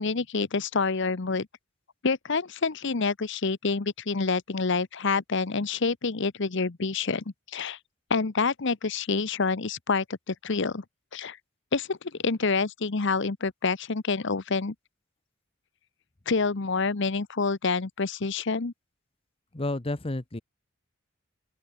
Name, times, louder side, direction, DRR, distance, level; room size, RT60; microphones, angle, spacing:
voice 1, 0.0-1.5 2.0-7.2 7.5-7.8 8.1-10.8 11.1-11.4 11.7-14.7 16.3-18.7, left 4 dB, 60° left, 0.9 m, -27 dB
voice 2, 19.5-20.4, left 2 dB, 30° left, 1.0 m, -31 dB
open air
head